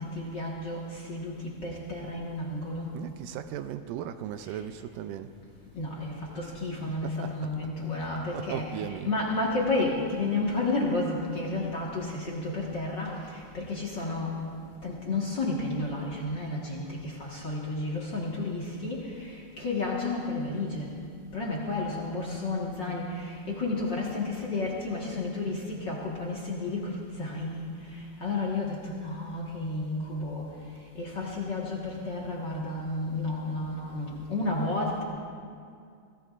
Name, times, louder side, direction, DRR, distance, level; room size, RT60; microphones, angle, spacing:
voice 1, 0.0-2.9 4.5-4.6 5.7-14.4 14.8-21.0 21.3-30.5 30.9-35.0, left 2 dB, 45° left, -4 dB, 1.7 m, -32 dB
voice 2, 2.9-5.3 6.8-7.7 8.3-9.2, right 10 dB, 80° right, 9 dB, 2.1 m, -37 dB
25.0 x 18.0 x 2.5 m, 2.4 s
omnidirectional pair, 3.9 m